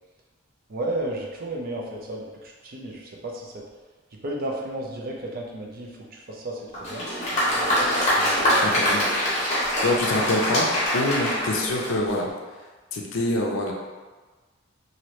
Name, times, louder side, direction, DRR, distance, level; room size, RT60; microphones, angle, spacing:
voice 1, 0.7-3.6 4.2-7.1 8.2-8.8, right 1 dB, 45° right, -1 dB, 0.5 m, -33 dB
Applause, 6.7-12.3, equal, 30° left, 1.0 m, -24 dB
voice 2, 8.6-9.0 9.8-10.7 10.9-12.3 12.9-13.7, left 2 dB, 65° left, -1 dB, 0.5 m, -25 dB
2.9 x 2.6 x 3.1 m, 1.3 s
head